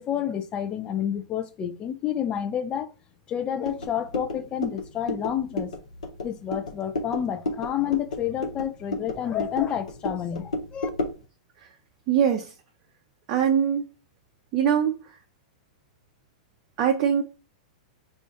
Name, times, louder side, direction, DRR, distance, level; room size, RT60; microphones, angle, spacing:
voice 1, 0.0-2.9 3.3-5.7 6.2-10.9, left 9 dB, 25° left, 0.5 m, -29 dB
sound 1, 3.6-11.2, left 2 dB, 70° left, 1.0 m, -33 dB
voice 2, 12.1-12.5 13.3-13.8 14.5-15.0 16.8-17.2, right 8 dB, 35° right, 0.5 m, -22 dB
2.5 x 2.4 x 3.8 m
figure-of-eight pair, 100°, 4 cm